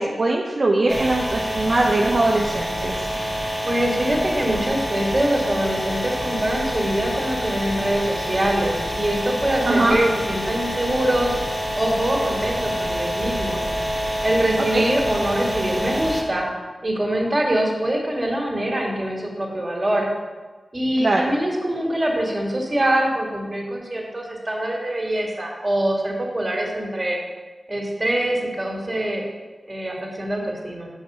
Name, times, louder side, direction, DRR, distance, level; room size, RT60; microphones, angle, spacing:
voice 1, 0.0-3.1 9.6-10.0 14.7-14.8 21.0-21.2, right 2 dB, 55° right, -1 dB, 0.7 m, -21 dB
sound 1, 0.9-16.2, equal, 10° left, 1.6 m, -27 dB
voice 2, 3.6-11.3 11.7-13.6 14.2-16.5 16.8-20.1 20.7-27.2 27.7-29.2 29.7-30.9, right 1 dB, 30° right, -1 dB, 2.2 m, -24 dB
5.9 x 5.3 x 6.7 m, 1.3 s
cardioid pair, 55°, 0 cm